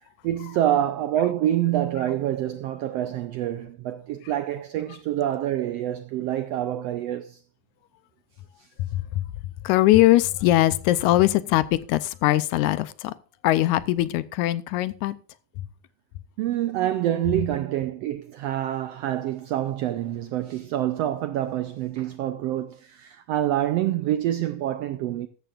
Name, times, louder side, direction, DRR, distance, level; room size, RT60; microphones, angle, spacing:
voice 1, 0.2-7.4 16.4-25.3, right 12 dB, 85° right, 1.4 m, -26 dB
voice 2, 8.8-9.3 9.6-13.1 13.4-15.2, left 15 dB, 80° left, 2.0 m, -21 dB
14.0 x 13.5 x 2.5 m
omnidirectional pair, 3.5 m